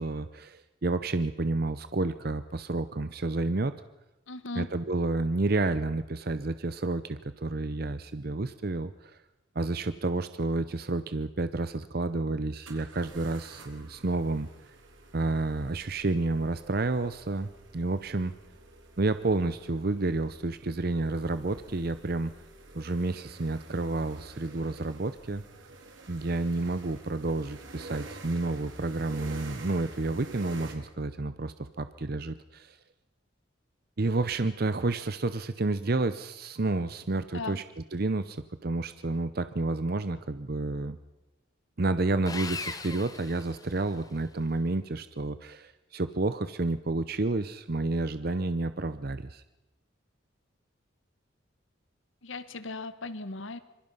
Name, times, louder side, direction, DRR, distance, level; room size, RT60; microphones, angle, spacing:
voice 1, 0.0-3.7 4.6-9.1 9.5-14.5 15.1-18.3 19.0-22.3 22.7-25.4 26.1-32.8 34.0-37.6 37.9-41.0 41.8-49.4, right 2 dB, 50° right, 12 dB, 0.7 m, -30 dB
voice 2, 4.3-4.7 37.3-37.6 52.2-53.6, left 3 dB, 75° left, 13 dB, 1.3 m, -37 dB
sound 1, 11.5-11.6 12.6-30.7, right 2 dB, 75° right, 3.7 m, -49 dB
Sawing, 42.3-44.2, left 4 dB, 20° left, 1.1 m, -39 dB
26.0 x 22.5 x 5.6 m, 0.96 s
head